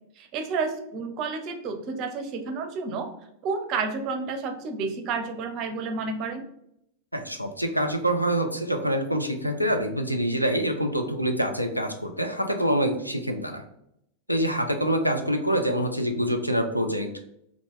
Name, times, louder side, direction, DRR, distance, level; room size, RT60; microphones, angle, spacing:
voice 1, 0.2-3.1 3.4-6.4, right 4 dB, 40° right, 6 dB, 0.5 m, -30 dB
voice 2, 7.1-13.6 14.3-17.1, equal, 90° left, 5 dB, 0.4 m, -26 dB
2.8 x 2.4 x 3.7 m, 0.76 s
figure-of-eight pair, 90°, 0 cm